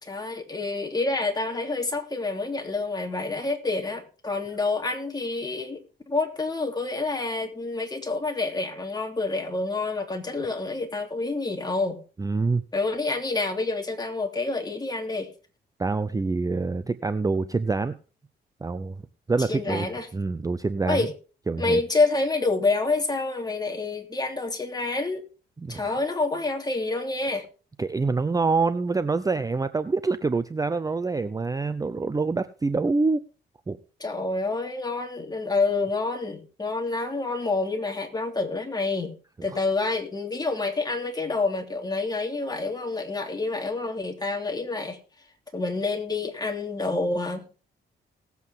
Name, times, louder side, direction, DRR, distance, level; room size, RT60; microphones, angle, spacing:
voice 1, 0.0-12.0 12.7-15.3 19.5-20.1 20.8-21.1 21.6-25.2 25.7-27.4 34.0-39.1 39.4-45.0 45.5-47.5, left 3 dB, 20° left, 3.0 m, -28 dB
voice 2, 12.2-12.6 15.8-18.0 18.6-19.0 19.3-19.9 20.1-21.1 21.5-21.8 25.6-25.9 27.8-33.2 33.7-33.8, right 3 dB, 15° right, 0.6 m, -26 dB
18.5 x 8.2 x 3.7 m
cardioid pair, 90°, 20 cm